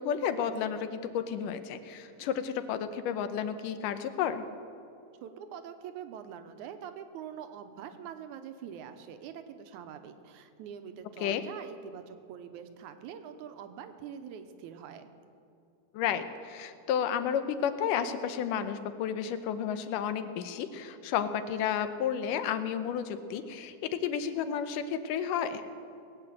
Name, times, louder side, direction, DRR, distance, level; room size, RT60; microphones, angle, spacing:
voice 1, 0.0-4.4 11.2-11.4 15.9-25.6, left 8 dB, 90° left, 10 dB, 2.4 m, -32 dB
voice 2, 5.2-15.1, right 8 dB, 75° right, 9 dB, 2.2 m, -44 dB
19.5 x 8.7 x 7.8 m, 2.7 s
omnidirectional pair, 3.6 m